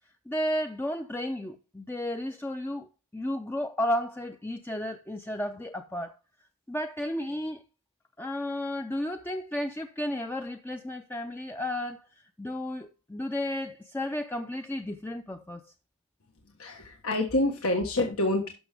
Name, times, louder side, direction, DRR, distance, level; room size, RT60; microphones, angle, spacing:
voice 1, 0.3-6.1 6.7-7.6 8.2-12.1 12.4-15.7, left 1 dB, 10° left, 0.4 m, -33 dB
voice 2, 16.6-18.5, left 2 dB, 85° left, 1.5 m, -27 dB
12.5 x 6.0 x 3.5 m
head